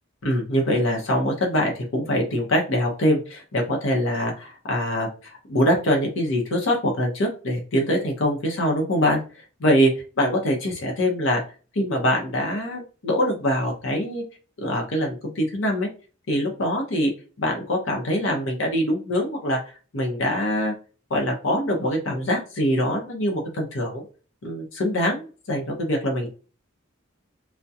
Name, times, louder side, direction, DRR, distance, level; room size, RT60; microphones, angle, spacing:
voice 1, 0.2-9.2 9.6-9.9 10.2-11.4 11.7-14.2 14.6-15.9 16.3-17.1 17.4-19.6 19.9-20.7 21.1-24.0 24.4-26.3, equal, 75° left, 1 dB, 0.7 m, -23 dB
2.3 x 2.1 x 2.6 m, 0.36 s
head